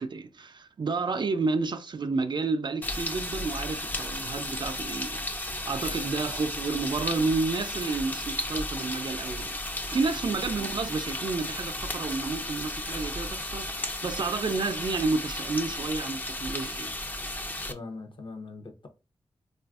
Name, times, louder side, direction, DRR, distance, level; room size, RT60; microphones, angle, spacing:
voice 1, 0.0-16.9, right 4 dB, 45° right, 0.4 m, -31 dB
sound 1, 2.8-17.7, left 1 dB, 15° left, 0.4 m, -34 dB
voice 2, 17.7-18.9, left 3 dB, 50° left, 0.7 m, -41 dB
3.2 x 2.4 x 2.3 m
cardioid pair, 50°, 10 cm